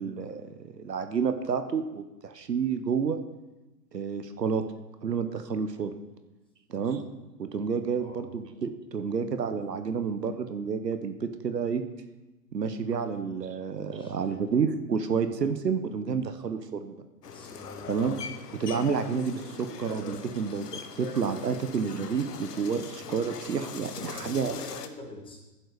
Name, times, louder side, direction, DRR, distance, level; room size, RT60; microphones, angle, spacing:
voice 1, 0.0-3.2 3.9-4.6 5.0-5.9 6.7-7.0 7.4-11.8 12.5-17.0 17.9-18.2 18.6-24.6, right 6 dB, 80° right, 9 dB, 1.0 m, -30 dB
voice 2, 13.8-14.4 15.2-15.3 17.2-18.0 23.8-25.4, left 2 dB, 10° left, 1 dB, 1.8 m, -45 dB
sound 1, 17.2-24.9, left 6 dB, 70° left, 1.0 m, -41 dB
11.0 x 7.7 x 4.9 m, 1.1 s
figure-of-eight pair, 115°, 49 cm